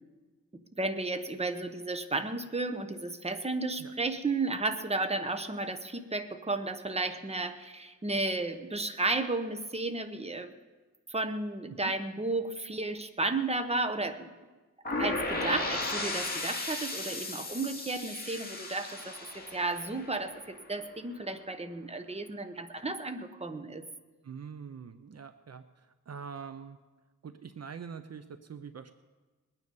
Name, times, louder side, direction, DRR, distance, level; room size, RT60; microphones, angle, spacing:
voice 1, 0.8-10.5 11.1-14.3 15.0-23.8, right 2 dB, 20° right, 8 dB, 1.0 m, -33 dB
sound 1, 14.9-20.7, left 2 dB, 30° left, 2.1 m, -35 dB
voice 2, 24.2-26.8 27.2-28.9, right 6 dB, 55° right, 10 dB, 0.7 m, -44 dB
21.0 x 9.5 x 5.4 m, 1.3 s
wide cardioid pair, 95°, 31 cm